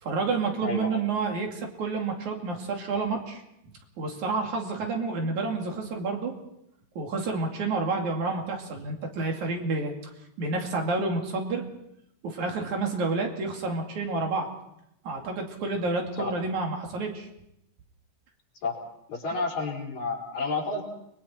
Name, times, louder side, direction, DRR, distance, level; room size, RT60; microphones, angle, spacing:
voice 1, 0.0-3.4 4.0-6.4 7.0-9.9 10.4-11.7 12.2-14.5 15.0-17.3, right 3 dB, 85° right, 2 dB, 4.0 m, -29 dB
voice 2, 0.6-1.0 16.2-16.3 18.6-18.8 19.1-20.8, left 3 dB, 75° left, -2 dB, 5.7 m, -30 dB
29.5 x 21.0 x 4.4 m, 0.79 s
omnidirectional pair, 3.3 m